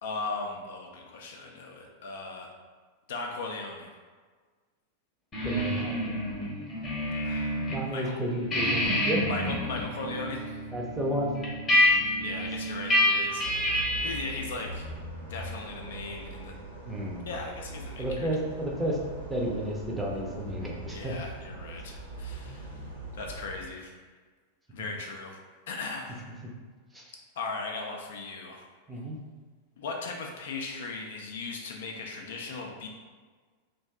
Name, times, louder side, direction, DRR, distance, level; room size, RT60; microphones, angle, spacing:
voice 1, 0.0-2.5 3.1-3.9 7.2-8.1 9.3-10.6 11.9-14.9 15.3-16.5 17.2-18.3 20.9-22.8 23.1-23.9 24.7-25.4 25.7-26.2 27.4-28.7 29.8-32.9, left 3 dB, 60° left, 1 dB, 0.4 m, -38 dB
sound 1, 5.3-7.8 8.1-14.3, left 1 dB, 20° left, 0.8 m, -28 dB
voice 2, 5.4-6.1 7.7-9.2 10.7-11.4 16.8-17.3 18.0-19.0 19.3-21.2 26.9-27.0 28.9-29.2, equal, 10° right, -3 dB, 0.6 m, -31 dB
sound 2, 13.4-23.6, right 2 dB, 75° right, 0.6 m, -42 dB
2.6 x 2.2 x 3.4 m, 1.5 s
figure-of-eight pair, 90°, 0 cm